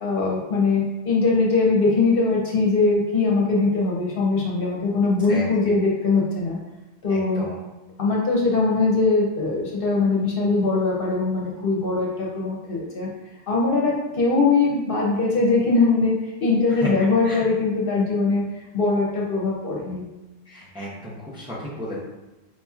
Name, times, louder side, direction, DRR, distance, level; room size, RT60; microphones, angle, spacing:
voice 1, 0.0-6.6 7.0-7.4 8.0-13.1 13.5-18.4 18.7-20.0, left 3 dB, 60° left, -3 dB, 0.9 m, -21 dB
voice 2, 5.3-5.8 7.1-7.6 16.7-16.9 17.2-17.4 20.5-22.0, equal, 5° right, -7 dB, 0.7 m, -33 dB
4.7 x 2.8 x 2.3 m, 1.1 s
omnidirectional pair, 1.1 m